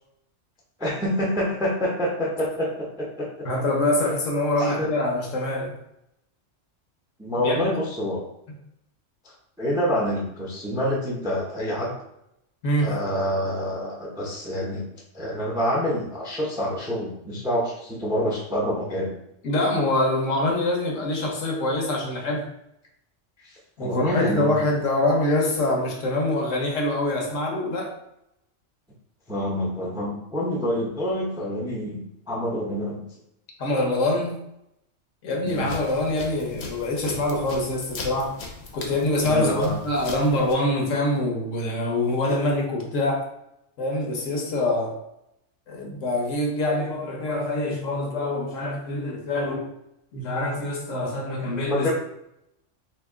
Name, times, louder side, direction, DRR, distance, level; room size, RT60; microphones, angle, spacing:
voice 1, 0.8-3.5 4.6-4.9 7.2-8.3 9.6-11.9 12.8-14.9 15.1-19.1 23.4-24.6 29.3-33.0 35.4-35.7 39.2-39.8 51.7-51.9, equal, 5° right, -2 dB, 0.3 m, -27 dB
voice 2, 3.4-5.8 7.4-7.7 8.5-8.6 12.6-12.9 19.4-22.5 23.8-27.9 33.6-34.4 35.2-38.3 38.7-43.3 43.8-45.0 45.7-49.7 50.1-51.9, left 1 dB, 80° left, 0 dB, 1.2 m, -25 dB
sound 1, 35.5-40.5, left 3 dB, 60° left, 0.9 m, -39 dB
2.9 x 2.8 x 3.5 m, 0.81 s
omnidirectional pair, 1.3 m